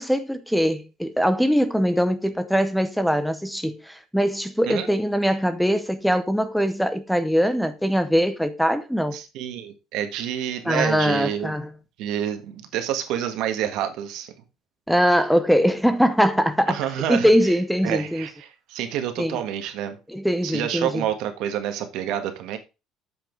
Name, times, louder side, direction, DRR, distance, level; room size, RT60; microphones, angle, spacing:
voice 1, 0.0-9.2 10.6-11.7 14.9-16.8 17.1-18.3 19.2-19.4 20.1-21.0, equal, ahead, 0.6 m, -22 dB
voice 2, 9.1-11.5 12.0-14.3 16.7-17.5 17.8-20.0 20.4-22.6, right 10 dB, 65° right, 1.6 m, -28 dB
7.8 x 5.9 x 4.6 m
cardioid pair, 155°, 0 cm